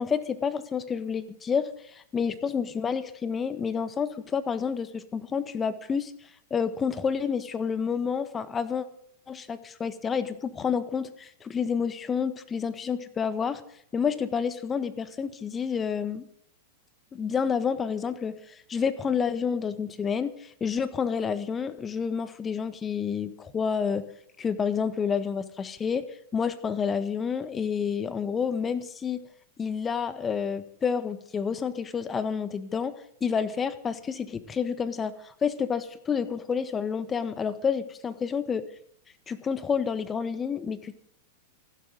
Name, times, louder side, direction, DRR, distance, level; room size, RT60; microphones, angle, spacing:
voice 1, 0.0-6.1 6.5-8.9 9.3-13.6 13.9-16.3 17.1-24.0 24.4-26.0 26.3-29.2 29.6-32.9 33.2-38.7 39.3-41.0, left 6 dB, 20° left, 12 dB, 1.5 m, -29 dB
27.5 x 12.5 x 3.9 m, 0.68 s
figure-of-eight pair, 95°, 0 cm